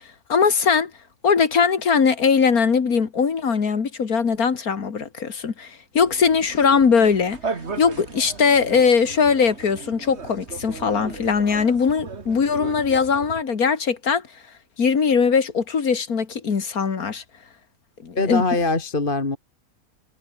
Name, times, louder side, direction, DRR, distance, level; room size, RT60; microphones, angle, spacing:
voice 1, 0.3-0.9 1.2-7.4 7.8-14.2 14.8-17.2 18.0-18.4, left 6 dB, 75° left, 2.4 m, -20 dB
sound 1, 6.0-13.4, right 4 dB, 45° right, 2.2 m, -36 dB
voice 2, 18.1-19.4, left 2 dB, 35° left, 2.5 m, -22 dB
omnidirectional pair, 1.5 m